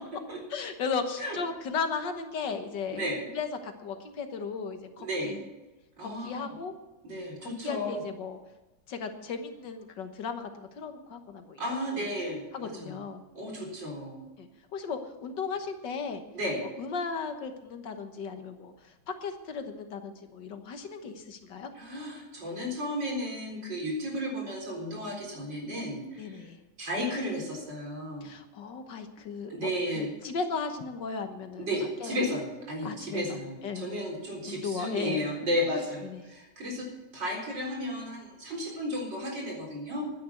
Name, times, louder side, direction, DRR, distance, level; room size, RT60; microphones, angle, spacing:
voice 1, 0.5-5.4 6.0-6.7 7.4-8.4 8.9-12.1 12.5-13.2 14.4-16.2 16.8-21.7 26.2-26.6 28.2-31.7 32.0-32.2 32.8-34.0 34.5-35.3 36.0-36.2, left 5 dB, 70° left, 7 dB, 1.9 m, -36 dB
voice 2, 5.0-5.3 6.0-6.5 7.0-8.0 11.6-13.0 13.3-14.2 16.3-16.6 21.7-26.4 26.8-28.3 29.5-30.1 31.6-36.9 37.1-40.1, equal, 70° right, -1 dB, 4.8 m, -33 dB
11.5 x 10.0 x 8.3 m, 1.1 s
omnidirectional pair, 2.0 m